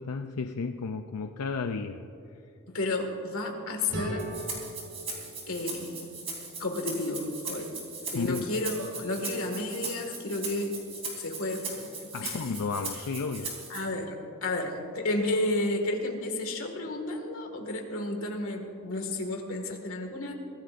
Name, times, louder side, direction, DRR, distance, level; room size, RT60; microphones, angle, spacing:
voice 1, 0.0-2.0 8.1-8.5 12.1-13.5, left 4 dB, 90° left, 6 dB, 0.5 m, -33 dB
voice 2, 2.7-4.3 5.5-6.1 6.6-7.8 8.1-10.7 11.1-12.5 13.7-20.3, left 2 dB, 65° left, 3 dB, 2.0 m, -32 dB
sound 1, 3.9-6.8, right 1 dB, 60° right, 2.8 m, -40 dB
Rattle (instrument), 4.2-13.8, right 4 dB, 30° right, 3.6 m, -39 dB
23.5 x 17.0 x 2.6 m, 2.9 s
head